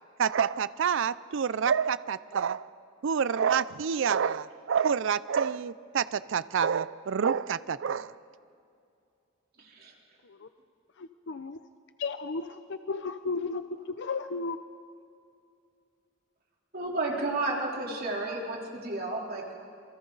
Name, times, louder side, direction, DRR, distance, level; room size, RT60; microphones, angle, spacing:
voice 1, 0.2-2.7 3.0-8.2, right 7 dB, 65° right, 17 dB, 0.4 m, -28 dB
voice 2, 9.6-9.9 16.7-19.6, right 2 dB, 50° right, -2 dB, 3.5 m, -32 dB
voice 3, 11.0-11.6 12.0-13.6 13.9-14.6, left 4 dB, 60° left, 10 dB, 0.6 m, -34 dB
28.0 x 24.0 x 4.0 m, 2.5 s
head